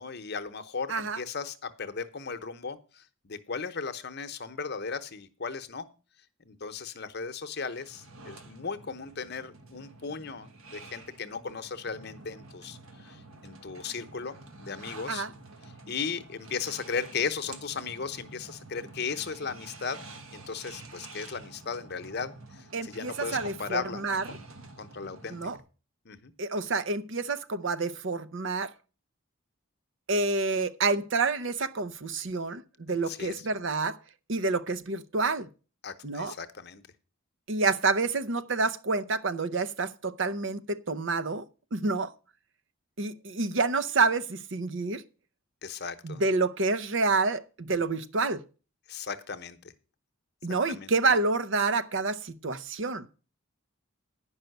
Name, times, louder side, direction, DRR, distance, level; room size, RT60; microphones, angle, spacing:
voice 1, 0.0-5.9 6.5-14.4 14.6-15.2 15.9-20.0 20.3-24.4 24.8-25.4 26.0-26.3 33.1-33.3 35.8-36.8 45.6-46.2 48.9-49.7 50.7-51.2, left 5 dB, 50° left, 0.9 m, -36 dB
sound 1, 7.5-25.6, right 3 dB, 75° right, 1.4 m, -49 dB
voice 2, 22.7-24.2 25.3-25.6 26.4-28.7 30.1-34.0 34.3-35.5 36.0-36.3 37.5-41.4 41.7-42.1 43.0-45.0 46.0-48.4 50.4-53.1, right 3 dB, 60° right, 0.7 m, -28 dB
10.5 x 5.6 x 7.8 m
head